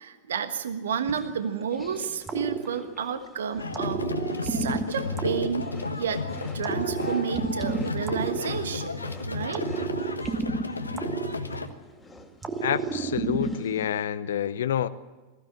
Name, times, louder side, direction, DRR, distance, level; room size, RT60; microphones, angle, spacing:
voice 1, 0.0-4.1 4.4-5.7 6.0-6.2 6.5-9.6, right 7 dB, 65° right, 9 dB, 1.4 m, -31 dB
sound 1, 1.0-14.1, left 1 dB, 10° left, 2.6 m, -49 dB
sound 2, 2.3-3.3 3.7-6.1 6.6-9.0 9.5-11.9 12.4-13.9, right 4 dB, 15° right, 1.4 m, -31 dB
sound 3, 3.6-11.7, left 3 dB, 80° left, 1.3 m, -33 dB
voice 2, 12.6-14.9, left 10 dB, 60° left, 13 dB, 0.7 m, -28 dB
21.0 x 15.5 x 8.7 m, 1.2 s
figure-of-eight pair, 90°, 0 cm